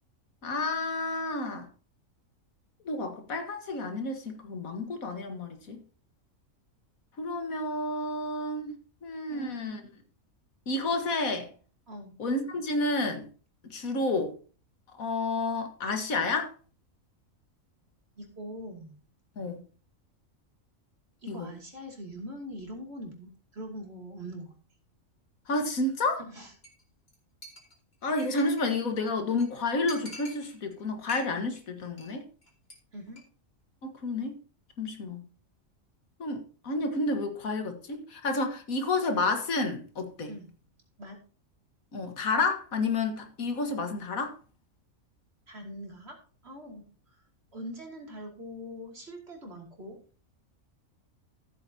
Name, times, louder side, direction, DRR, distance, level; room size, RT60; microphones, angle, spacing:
voice 1, 0.4-1.7 2.9-5.8 7.2-8.7 9.0-9.8 10.7-11.5 12.2-13.3 13.6-14.3 15.0-16.5 19.4-19.6 21.3-21.5 25.5-26.2 28.0-32.3 33.8-34.4 34.8-35.3 36.2-40.3 41.9-44.3, left 2 dB, 85° left, 2.0 m, -30 dB
voice 2, 9.3-9.9 11.9-12.2 18.1-19.0 21.2-24.6 26.2-26.5 32.9-33.3 40.3-40.5 41.0-41.2 45.5-46.2 46.4-47.2 47.5-50.0, equal, 50° right, 2.9 m, -43 dB
Chink clink, 26.6-26.8 27.1-27.2 27.4-28.8 29.1-29.2 29.4-29.5 29.9-30.8 31.1-31.6 31.8-32.1 32.4-32.7 33.1-33.2, left 1 dB, 45° left, 3.1 m, -46 dB
14.5 x 8.2 x 2.8 m
omnidirectional pair, 1.4 m